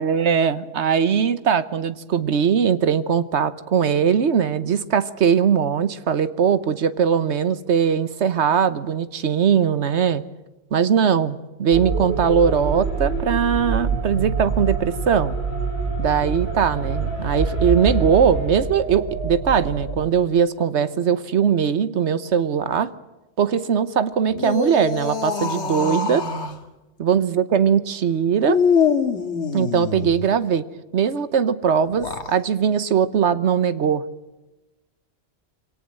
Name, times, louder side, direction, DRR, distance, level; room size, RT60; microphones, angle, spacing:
voice 1, 0.0-10.2 10.7-15.4 16.0-22.9 23.4-26.2 27.0-28.6 29.5-30.6 30.9-34.0, right 7 dB, 85° right, 14 dB, 1.3 m, -20 dB
sound 1, 11.7-20.0, right 4 dB, 70° right, 5.4 m, -26 dB
sound 2, 24.3-26.6 28.5-30.3 31.9-32.4, left 5 dB, 90° left, 1.9 m, -24 dB
23.0 x 18.0 x 7.7 m, 1.1 s
omnidirectional pair, 1.1 m